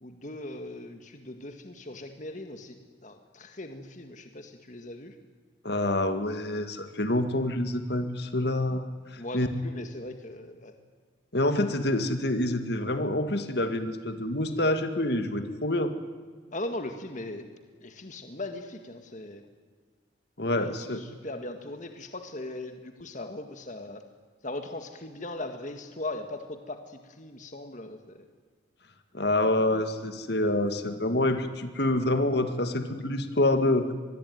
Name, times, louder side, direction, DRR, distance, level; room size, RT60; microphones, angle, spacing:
voice 1, 0.0-2.8 3.0-5.2 9.2-10.7 16.5-17.4 17.8-19.5 20.5-24.0 24.4-28.3, left 2 dB, 40° left, 6 dB, 1.9 m, -39 dB
voice 2, 5.6-8.8 9.1-9.5 11.3-15.9 20.4-21.0 29.1-33.9, left 1 dB, 55° left, 8 dB, 2.0 m, -27 dB
25.5 x 21.0 x 9.4 m, 1.5 s
head